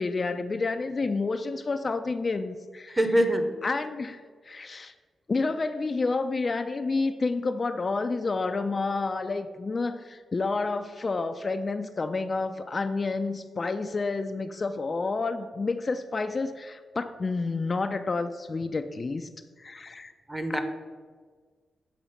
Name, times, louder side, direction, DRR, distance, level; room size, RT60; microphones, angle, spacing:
voice 1, 0.0-3.0 3.6-4.9 5.3-19.3 19.6-20.1 20.5-20.6, left 3 dB, 40° left, 8 dB, 0.3 m, -29 dB
voice 2, 2.9-3.5 20.3-20.6, equal, 20° right, 7 dB, 0.8 m, -24 dB
7.1 x 3.1 x 5.5 m, 1.5 s
cardioid pair, 60°, 0 cm